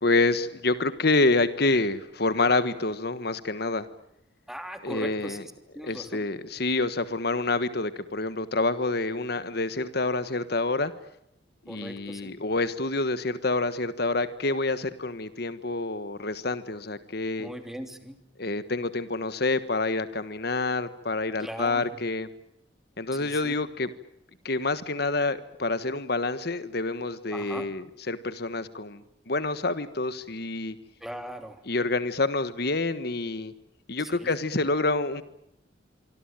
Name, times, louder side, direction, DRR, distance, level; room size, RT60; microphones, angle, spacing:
voice 1, 0.0-3.8 4.8-5.4 5.8-10.9 11.7-17.5 18.4-22.3 23.0-23.9 24.4-30.8 31.7-33.5 33.9-35.2, left 3 dB, 60° left, 13 dB, 1.4 m, -27 dB
voice 2, 4.5-6.3 11.7-12.3 17.4-18.2 21.4-21.9 23.2-23.6 27.3-27.7 31.0-31.6 34.0-34.3, equal, ahead, 7 dB, 3.1 m, -39 dB
26.0 x 25.0 x 9.0 m, 0.77 s
head